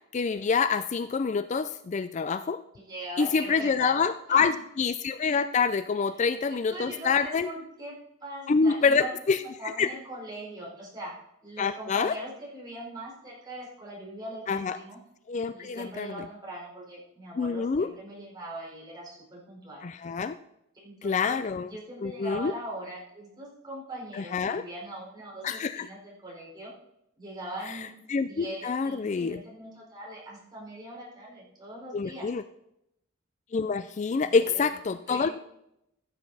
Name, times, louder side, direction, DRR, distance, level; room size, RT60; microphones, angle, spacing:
voice 1, 0.1-2.6 3.2-7.5 8.5-9.4 9.8-9.9 11.6-12.2 14.5-14.8 15.3-16.2 17.4-17.9 19.8-20.4 21.0-21.7 22.0-22.5 24.1-24.6 25.4-25.9 27.7-27.8 28.1-29.4 31.9-32.4 33.5-35.3, left 5 dB, 35° left, 12 dB, 0.3 m, -26 dB
voice 2, 2.8-4.5 6.2-7.9 8.2-11.1 11.4-15.0 15.5-19.9 20.7-26.7 27.2-32.3 34.1-35.3, right 1 dB, 20° right, -4 dB, 4.5 m, -41 dB
15.0 x 7.9 x 4.1 m, 0.80 s
head